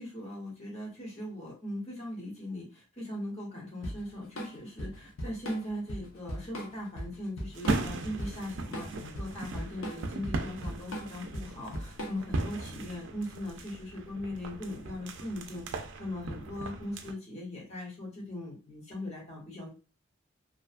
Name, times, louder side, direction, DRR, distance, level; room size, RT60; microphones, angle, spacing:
voice 1, 0.0-19.7, left 1 dB, 35° left, -3 dB, 1.0 m, -39 dB
Drum kit / Drum, 3.8-12.4, equal, 85° left, 0.7 m, -39 dB
sound 1, 7.5-17.1, right 3 dB, 60° right, 0.4 m, -38 dB
2.7 x 2.3 x 2.4 m, 0.32 s
head